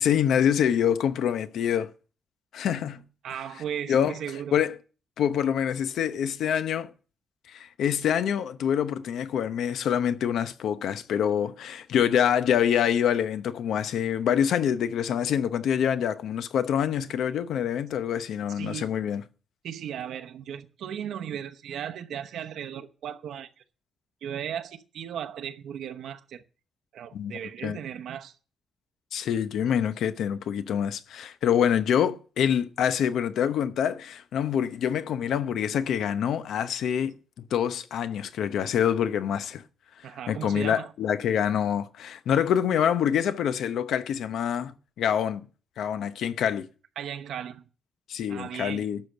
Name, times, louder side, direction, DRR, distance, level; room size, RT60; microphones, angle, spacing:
voice 1, 0.0-1.9 2.5-3.0 3.9-4.1 4.5-4.7 5.2-6.9 7.5-19.2 27.1-27.3 27.6-27.8 29.1-37.1 37.5-39.6 40.3-45.5 45.8-46.7 48.1-49.0, left 9 dB, 85° left, 0.8 m, -26 dB
voice 2, 3.2-4.6 18.5-18.8 19.6-23.5 24.2-26.4 26.9-28.4 40.0-40.9 47.0-47.6 48.3-48.9, right 9 dB, 85° right, 0.9 m, -36 dB
12.0 x 6.4 x 6.6 m
wide cardioid pair, 165°, 0 cm